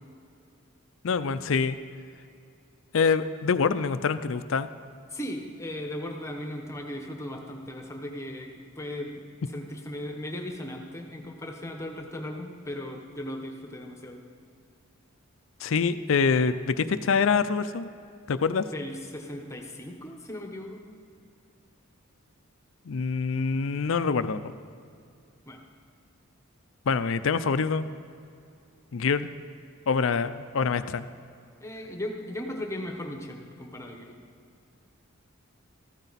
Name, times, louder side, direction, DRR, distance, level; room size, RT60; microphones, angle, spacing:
voice 1, 1.0-1.8 2.9-4.7 15.6-17.9 18.3-18.6 22.9-24.5 26.9-27.9 28.9-29.3 29.9-31.1, left 5 dB, 60° left, 12 dB, 0.5 m, -25 dB
voice 2, 5.1-9.3 9.5-14.2 18.7-20.9 25.5-25.6 31.6-34.2, left 1 dB, 15° left, 2 dB, 1.1 m, -37 dB
14.5 x 13.0 x 4.1 m, 2.4 s
head